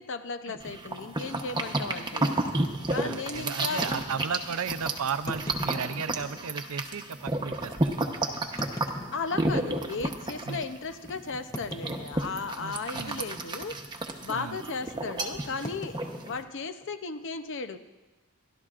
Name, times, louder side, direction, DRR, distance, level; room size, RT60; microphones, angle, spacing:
voice 1, 0.0-2.4 2.9-4.0 9.1-16.0 16.2-17.8, left 4 dB, 60° left, 9 dB, 0.7 m, -35 dB
sound 1, 0.5-0.7 1.5-1.6 1.9-2.0 2.6-2.7 5.3-6.5 7.3-7.4 8.4-9.9 10.4-10.5 11.5-12.6 12.9-13.3 13.5-13.8 15.6-17.3, left 1 dB, 15° left, 0.9 m, -41 dB
sound 2, 0.6-16.4, right 2 dB, 20° right, 0.9 m, -32 dB
voice 2, 3.0-8.0 9.5-9.7 10.5-10.6 12.6-13.2 14.3-14.6, right 6 dB, 75° right, 12 dB, 0.6 m, -35 dB
29.0 x 12.0 x 2.5 m, 1.1 s
head